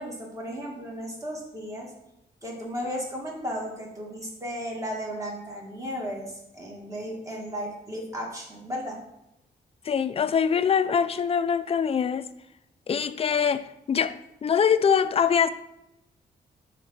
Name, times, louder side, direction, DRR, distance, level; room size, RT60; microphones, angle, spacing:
voice 1, 0.0-1.9 2.4-9.0, equal, 20° right, 1.6 m, -35 dB
voice 2, 9.8-12.3 12.9-14.2 14.4-15.5, left 7 dB, 35° left, 0.3 m, -23 dB
6.0 x 3.9 x 5.9 m
wide cardioid pair, 125°, 17 cm